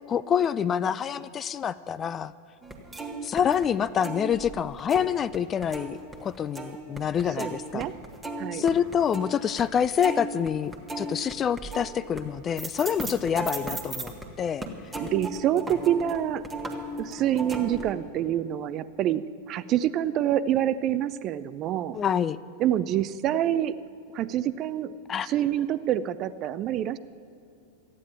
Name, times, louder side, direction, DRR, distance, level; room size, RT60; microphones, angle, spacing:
voice 1, 0.1-2.3 3.2-7.9 8.5-10.7 11.0-14.1 14.4-14.7 21.9-22.4 25.1-25.3, left 8 dB, 25° left, 17 dB, 0.3 m, -26 dB
sound 1, 2.6-5.4 5.6-14.3 14.6-17.9, right 2 dB, 10° right, 1.6 m, -36 dB
voice 2, 7.4-7.9 8.4-8.6 15.0-16.5 17.0-22.0 22.6-23.8 24.1-24.9 25.2-27.0, right 11 dB, 35° right, 15 dB, 0.5 m, -27 dB
14.0 x 9.7 x 8.7 m, 2.7 s
figure-of-eight pair, 90°, 0 cm